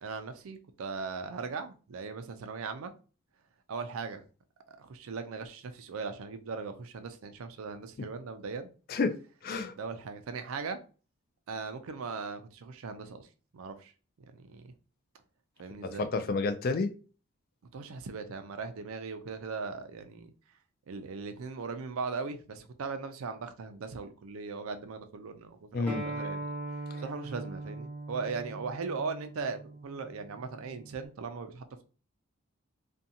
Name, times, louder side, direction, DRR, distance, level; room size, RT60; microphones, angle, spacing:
voice 1, 0.0-2.9 3.7-4.2 4.7-8.7 9.8-10.8 11.5-13.3 13.5-13.9 14.3-14.7 15.6-16.1 17.7-20.3 20.9-26.5 27.0-31.8, right 4 dB, 80° right, 0.4 m, -39 dB
voice 2, 9.4-9.7 15.8-16.9 25.7-26.0 26.9-27.0, left 3 dB, 45° left, 0.3 m, -30 dB
Acoustic guitar, 25.9-31.1, right 2 dB, 5° left, 0.9 m, -41 dB
2.5 x 2.2 x 2.7 m
head